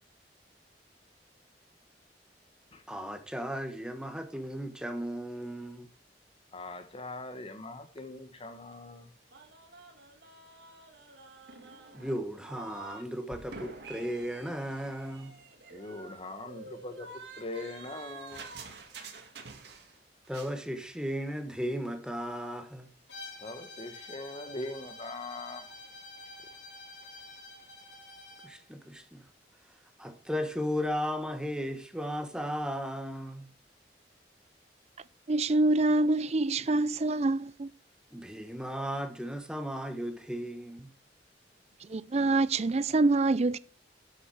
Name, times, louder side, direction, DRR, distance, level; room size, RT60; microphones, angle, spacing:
voice 1, 2.9-5.9 11.9-15.3 20.3-22.9 28.4-29.2 30.0-33.5 38.1-40.9, equal, 5° right, 1.3 m, -35 dB
voice 2, 6.5-9.1 15.7-17.1 17.4-18.4 23.4-25.6, left 2 dB, 35° left, 1.5 m, -41 dB
sound 1, 9.3-13.0 13.3-20.0 20.2-20.6, right 3 dB, 70° right, 2.0 m, -48 dB
Bowed string instrument, 23.1-28.6, left 3 dB, 85° left, 3.5 m, -48 dB
voice 3, 35.3-37.7 41.8-43.6, right 2 dB, 40° right, 0.5 m, -26 dB
12.0 x 6.8 x 4.8 m
head